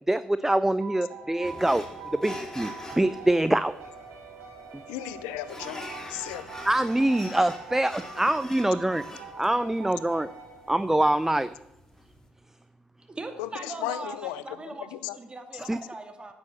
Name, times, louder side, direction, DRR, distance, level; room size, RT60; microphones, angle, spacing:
voice 1, 0.1-1.8 2.2-3.7 6.7-9.0 9.4-10.3 10.7-11.5 15.7-15.8, right 1 dB, 10° right, 15 dB, 0.6 m, -24 dB
sound 1, 0.8-11.2, right 5 dB, 75° right, 3.2 m, -44 dB
sound 2, 1.4-12.3, left 1 dB, 15° left, 3.9 m, -44 dB
voice 2, 4.9-6.6 13.4-14.6 14.9-15.2, left 14 dB, 85° left, 15 dB, 0.7 m, -35 dB
voice 3, 13.1-14.9 15.2-16.3, right 2 dB, 25° right, 5 dB, 2.5 m, -39 dB
10.5 x 8.8 x 7.6 m, 0.90 s
hypercardioid pair, 50°, 4 cm